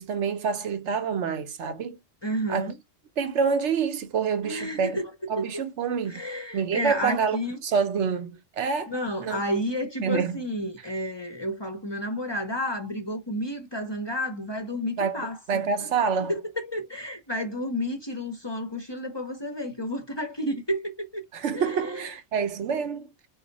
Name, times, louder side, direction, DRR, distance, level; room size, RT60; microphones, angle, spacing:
voice 1, 0.0-2.0 2.5-2.7 3.2-5.0 5.3-6.2 6.5-8.9 9.2-9.4 10.0-10.4 15.0-16.3 21.3-23.1, right 6 dB, 80° right, 1.1 m, -27 dB
voice 2, 2.2-2.8 4.4-5.5 6.1-7.6 8.9-15.6 16.3-21.2 21.5-22.1, equal, 25° left, 0.7 m, -31 dB
4.3 x 2.4 x 4.0 m
omnidirectional pair, 1.2 m